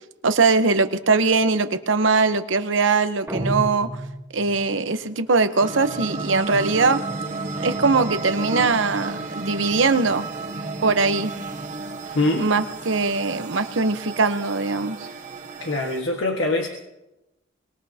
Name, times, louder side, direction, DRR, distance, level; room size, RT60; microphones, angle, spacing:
voice 1, 0.2-3.9 4.3-7.0 7.6-10.2 10.8-11.3 12.4-15.0, right 4 dB, 75° right, 9 dB, 1.0 m, -21 dB
sound 1, 3.3-4.7, right 1 dB, 15° right, 1.5 m, -30 dB
sound 2, 5.6-16.0, right 3 dB, 40° right, 1.3 m, -32 dB
voice 2, 12.1-12.5 15.0-15.2 15.6-16.7, left 2 dB, 90° left, 1 dB, 1.5 m, -24 dB
24.0 x 20.5 x 2.9 m, 0.98 s
head